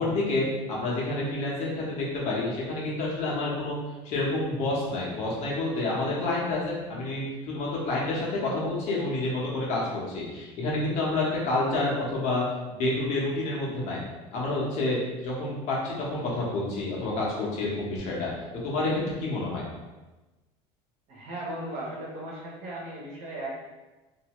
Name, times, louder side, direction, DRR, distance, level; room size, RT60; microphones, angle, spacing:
voice 1, 0.0-3.8 4.0-14.0 14.3-18.3 18.6-19.6, left 2 dB, 55° left, -4 dB, 1.0 m, -29 dB
voice 2, 21.1-23.6, right 1 dB, 55° right, -4 dB, 1.1 m, -37 dB
2.7 x 2.6 x 3.0 m, 1.1 s
cardioid pair, 130°, 14 cm